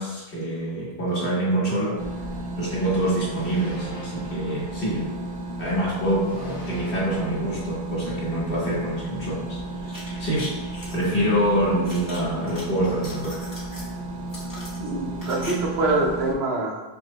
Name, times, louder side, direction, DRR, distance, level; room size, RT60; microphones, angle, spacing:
voice 1, 0.0-2.0 2.6-5.1 5.6-9.5 10.2-10.6 10.9-13.4, right 1 dB, 60° left, -6 dB, 1.3 m, -25 dB
sound 1, 2.0-16.3, right 1 dB, 60° right, 0.7 m, -33 dB
sound 2, 3.2-5.4 6.2-8.4, right 1 dB, 45° left, 1.2 m, -41 dB
sound 3, 9.8-11.0 11.8-12.6 12.9-13.9 14.3-15.5 15.8-15.9, left 1 dB, 20° left, 0.9 m, -40 dB
voice 2, 14.8-16.8, right 2 dB, 80° right, 0 dB, 1.0 m, -25 dB
5.3 x 2.1 x 3.0 m, 1.1 s
omnidirectional pair, 1.1 m